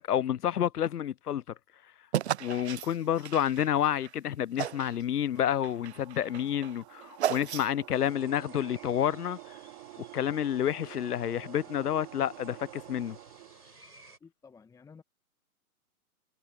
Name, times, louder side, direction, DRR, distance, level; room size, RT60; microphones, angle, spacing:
voice 1, 0.0-1.4 2.4-9.4 10.1-13.2, left 10 dB, 85° left, 0.5 m, -29 dB
sound 1, 2.1-4.1 4.6-5.0 5.4-7.9, right 11 dB, 50° right, 0.5 m, -34 dB
sound 2, 5.3-13.7, right 37 dB, 30° right, 3.3 m, -49 dB
sound 3, 7.9-14.2, right 3 dB, 80° right, 6.7 m, -56 dB
voice 2, 14.2-15.0, left 5 dB, 5° left, 1.5 m, -53 dB
figure-of-eight pair, 120°, 45 cm